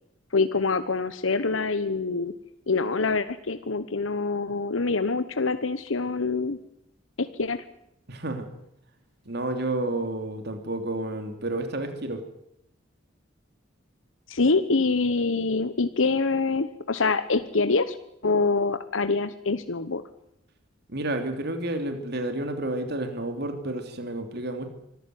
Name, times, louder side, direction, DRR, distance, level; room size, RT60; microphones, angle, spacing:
voice 1, 0.3-2.3 2.7-6.6 7.2-7.6 14.3-18.0 18.2-20.0, left 3 dB, 85° left, 11 dB, 1.1 m, -25 dB
voice 2, 8.1-8.5 9.2-12.2 20.9-24.7, right 1 dB, 55° right, 6 dB, 3.0 m, -30 dB
25.0 x 14.5 x 9.4 m, 0.79 s
head